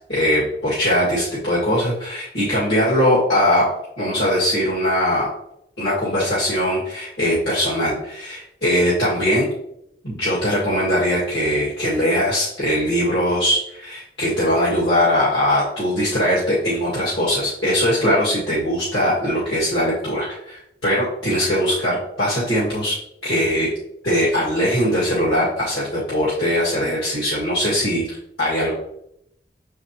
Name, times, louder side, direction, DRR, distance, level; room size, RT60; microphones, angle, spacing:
voice 1, 0.1-3.7 4.0-5.3 5.8-9.5 10.0-23.7 24.0-28.7, equal, 65° left, -9 dB, 2.1 m, -21 dB
6.5 x 5.0 x 2.9 m, 0.76 s
head